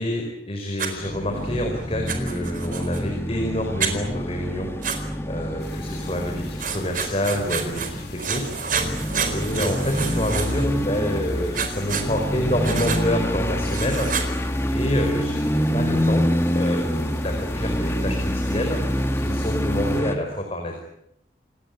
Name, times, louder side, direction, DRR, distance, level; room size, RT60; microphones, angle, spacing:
voice 1, 0.0-4.7 5.3-8.6 9.3-14.1 14.7-20.8, equal, 35° left, 3 dB, 4.9 m, -28 dB
Writing, 0.8-0.9 2.1-3.0 3.8-3.9 4.8-5.0 6.6-7.9 8.2-10.7 11.5-12.1 12.6-13.0 13.7-14.3, right 6 dB, 50° right, 4.3 m, -28 dB
sound 1, 1.0-20.1, equal, 15° left, 1.9 m, -26 dB
sound 2, 5.6-20.0, left 6 dB, 65° left, 5.6 m, -46 dB
29.0 x 19.5 x 9.5 m, 0.76 s
head